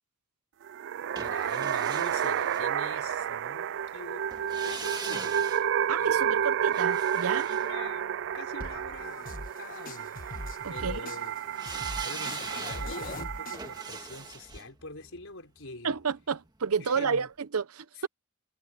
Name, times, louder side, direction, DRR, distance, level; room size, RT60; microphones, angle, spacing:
sound 1, 0.6-14.0, right 9 dB, 55° right, 0.3 m, -31 dB
voice 1, 1.2-5.6 7.4-9.3 9.5-10.2 10.7-11.3 12.0-15.9 16.8-17.3, left 3 dB, 65° left, 5.3 m, -44 dB
sound 2, 1.2-3.3 4.3-8.6 11.6-16.6 16.9-17.0, right 4 dB, 20° right, 1.7 m, -42 dB
voice 2, 5.9-7.5 10.6-11.1 15.8-18.1, right 6 dB, 90° right, 0.8 m, -31 dB
sound 3, 8.6-14.6, left 2 dB, 40° left, 1.5 m, -42 dB
head